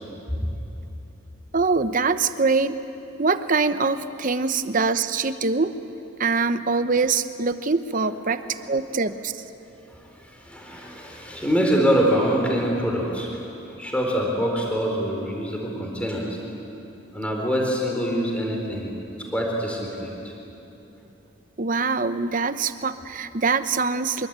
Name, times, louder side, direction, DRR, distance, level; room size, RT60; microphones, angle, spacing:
voice 1, 1.5-2.8 3.2-5.7 6.2-9.3 21.6-24.3, right 4 dB, 40° right, 11 dB, 0.8 m, -23 dB
voice 2, 9.9-13.4 13.8-16.4 17.1-18.9 19.3-20.3, equal, 5° left, -1 dB, 3.7 m, -25 dB
24.5 x 23.0 x 8.9 m, 2.9 s
head